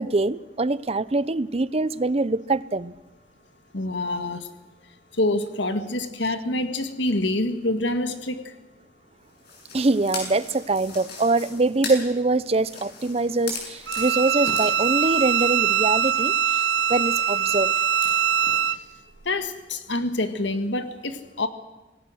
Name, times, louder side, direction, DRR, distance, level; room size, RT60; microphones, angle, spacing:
voice 1, 0.0-2.9 9.7-17.7, right 2 dB, 35° right, 17 dB, 0.7 m, -24 dB
voice 2, 3.7-4.5 5.2-8.5 19.3-21.5, left 2 dB, 80° left, 9 dB, 1.8 m, -26 dB
sound 1, 9.4-18.6, left 4 dB, 60° left, 7.8 m, -40 dB
Bowed string instrument, 13.9-18.8, right 9 dB, 70° right, 0.7 m, -22 dB
27.0 x 18.5 x 6.4 m, 1.1 s
head